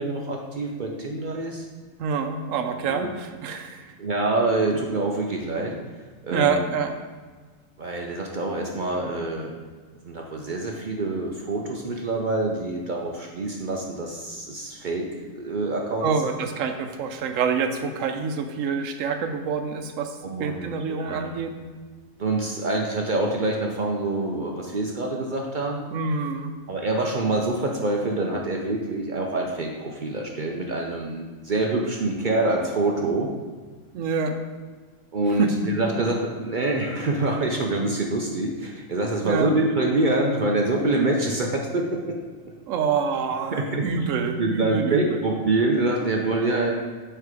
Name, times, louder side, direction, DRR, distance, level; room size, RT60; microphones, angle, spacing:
voice 1, 0.0-1.6 2.9-3.1 4.0-5.8 6.2-6.6 7.8-9.5 10.0-15.0 15.3-16.4 20.2-21.4 22.2-25.9 26.7-33.3 35.1-42.1 43.5-44.1 44.4-46.7, right 2 dB, 50° right, 1 dB, 0.6 m, -26 dB
voice 2, 2.0-3.9 6.3-6.9 16.0-21.5 25.9-26.5 33.9-34.4 35.4-35.5 35.8-35.9 39.2-39.5 42.7-45.2, right 5 dB, 75° right, 6 dB, 1.0 m, -26 dB
8.3 x 3.3 x 4.9 m, 1.4 s
omnidirectional pair, 1.4 m